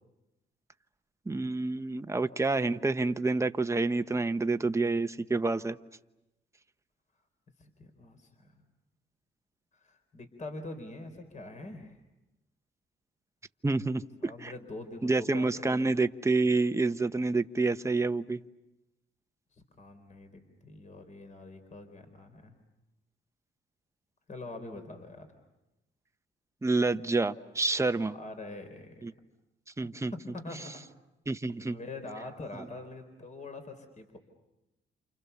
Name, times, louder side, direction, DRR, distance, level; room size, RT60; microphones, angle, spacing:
voice 1, 1.3-5.8 13.6-14.5 15.0-18.4 26.6-28.1 29.0-29.1 29.8-30.1 31.3-31.8, right 3 dB, 15° right, 9 dB, 1.0 m, -28 dB
voice 2, 7.6-8.6 9.7-12.0 14.2-15.9 19.5-22.6 24.3-25.3 28.1-29.0 30.1-30.7 31.6-34.2, left 2 dB, 40° left, 6 dB, 4.2 m, -44 dB
29.0 x 29.0 x 7.0 m, 0.95 s
cardioid pair, 90°, 20 cm